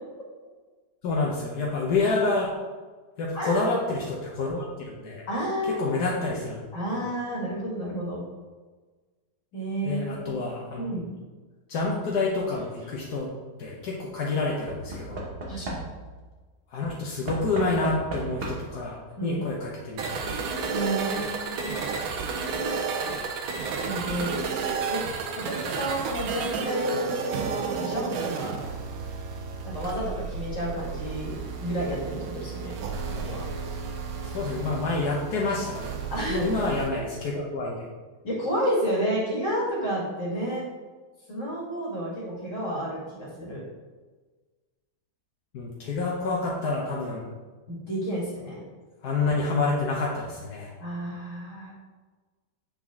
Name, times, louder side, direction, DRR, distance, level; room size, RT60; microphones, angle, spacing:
voice 1, 1.0-2.5 3.2-5.2 5.6-6.6 9.8-10.9 11.7-13.3 13.6-15.2 16.7-20.4 34.2-35.9 36.3-37.9 45.5-47.2 49.0-50.7, left 3 dB, 75° left, -3 dB, 1.4 m, -28 dB
voice 2, 3.3-3.8 5.3-5.8 6.7-8.2 9.5-10.4 10.8-11.1 15.5-15.8 19.2-19.4 20.7-21.8 23.8-24.3 24.9-25.0 25.4-28.6 29.6-32.8 33.2-33.5 36.1-36.4 38.2-40.6 41.3-43.6 47.7-48.6 50.8-51.7, right 1 dB, 50° left, -4 dB, 2.2 m, -30 dB
Knock / Wood, 12.5-13.0 14.7-16.2 17.3-18.9 19.9-20.0 20.2-20.3, right 1 dB, 40° right, 1.3 m, -36 dB
sound 1, 20.0-36.9, right 5 dB, 70° right, 1.1 m, -32 dB
8.7 x 3.9 x 3.6 m, 1.3 s
omnidirectional pair, 1.7 m